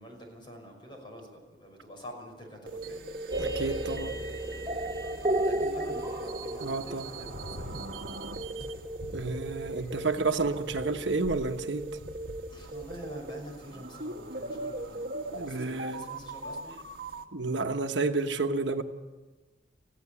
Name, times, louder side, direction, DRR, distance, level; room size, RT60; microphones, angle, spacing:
voice 1, 0.0-3.0 5.3-7.8 12.5-16.8, equal, 25° left, 5.9 m, -46 dB
sound 1, 2.7-17.2, right 2 dB, 60° right, 1.7 m, -39 dB
sound 2, 3.3-9.1, right 1 dB, 25° right, 2.0 m, -33 dB
voice 2, 3.4-4.2 6.6-7.1 9.1-12.0 15.3-16.0 17.3-18.8, right 3 dB, 80° right, 1.2 m, -30 dB
sound 3, 7.1-13.0, left 1 dB, 90° left, 4.0 m, -46 dB
20.0 x 15.5 x 8.5 m
head